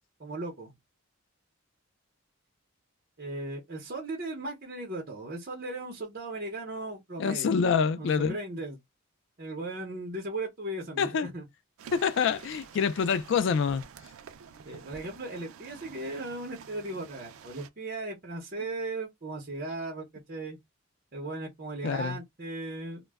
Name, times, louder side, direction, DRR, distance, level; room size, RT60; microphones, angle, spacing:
voice 1, 0.2-0.7 3.2-7.6 7.9-8.8 9.4-11.5 14.6-20.6 21.1-23.0, right 2 dB, 45° right, 0.7 m, -37 dB
voice 2, 7.2-8.3 11.0-11.3 11.9-13.8 21.8-22.2, left 6 dB, 60° left, 0.3 m, -26 dB
sound 1, 11.8-17.7, right 7 dB, 75° right, 0.4 m, -49 dB
2.2 x 2.0 x 3.4 m
head